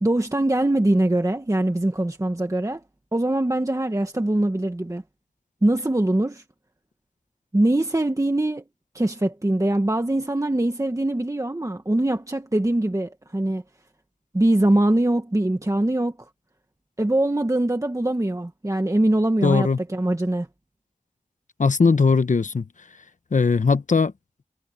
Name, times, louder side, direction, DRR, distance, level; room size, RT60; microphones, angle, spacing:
voice 1, 0.0-2.8 3.1-5.0 5.6-6.4 7.5-8.6 8.9-13.6 14.3-16.2 17.0-20.5, right 1 dB, 25° right, 1.4 m, -22 dB
voice 2, 19.4-19.8 21.6-22.6 23.3-24.1, left 4 dB, 80° left, 1.1 m, -19 dB
wide cardioid pair, 50°, 13 cm